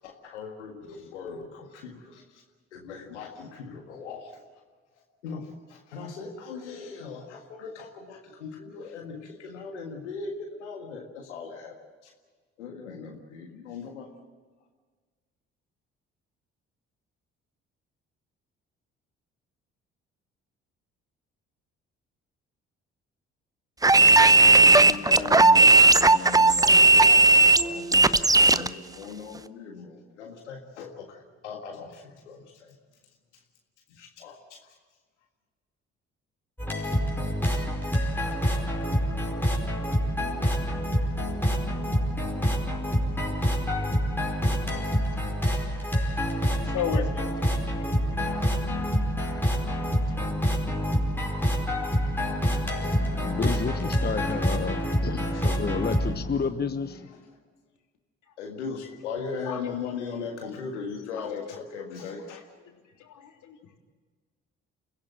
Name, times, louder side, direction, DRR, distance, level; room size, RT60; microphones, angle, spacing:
voice 1, 0.0-2.4 2.7-4.4 4.9-11.8 12.0-12.1 12.6-14.1 24.6-32.8 33.3-33.4 33.9-34.8 55.3-55.4 58.4-62.5, left 5 dB, 85° left, 2 dB, 1.8 m, -39 dB
sound 1, 23.8-28.7, right 3 dB, 10° right, 0.7 m, -16 dB
sound 2, 36.6-56.1, equal, 5° left, 5.0 m, -27 dB
voice 2, 45.5-46.0 46.7-47.1 48.4-48.5 49.7-50.3 59.5-59.6 61.2-61.3 63.1-63.6, left 9 dB, 60° left, 2 dB, 3.4 m, -34 dB
voice 3, 52.8-57.2, left 5 dB, 30° left, 9 dB, 1.2 m, -31 dB
29.0 x 16.0 x 7.7 m, 1.5 s
figure-of-eight pair, 45°, 34 cm